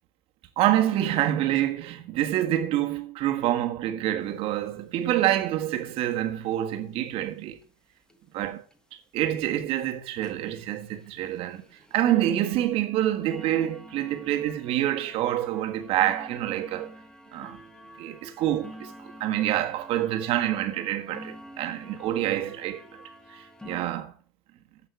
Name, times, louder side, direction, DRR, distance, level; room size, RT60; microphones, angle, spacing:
voice 1, 0.6-7.6 8.3-8.6 9.1-16.9 17.3-17.6 18.0-22.8 23.3-24.1, right 12 dB, 50° right, 1.6 m, -27 dB
sound 1, 4.2-4.3 4.6-4.7 4.9-5.1 5.4-5.8 6.5-6.6 7.1-7.2 7.6-7.7 8.1-8.2 8.7-8.8 9.2-9.4 9.8-9.9 10.2-24.0, equal, 5° left, 1.3 m, -48 dB
15.0 x 5.8 x 4.6 m
supercardioid pair, 110°, 12 cm